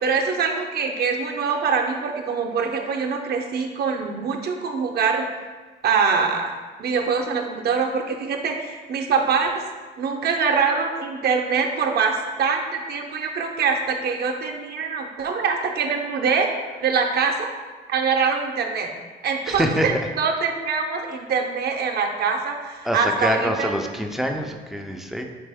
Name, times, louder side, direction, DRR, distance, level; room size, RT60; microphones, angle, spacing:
voice 1, 0.0-5.3 5.8-6.5 6.8-9.5 10.0-16.5 16.8-17.5 17.9-18.9 19.2-23.7, right 5 dB, 50° right, 2 dB, 0.5 m, -24 dB
voice 2, 19.5-19.9 22.8-25.2, equal, ahead, 4 dB, 0.3 m, -25 dB
4.4 x 2.9 x 3.4 m, 1.4 s
cardioid pair, 110°, 21 cm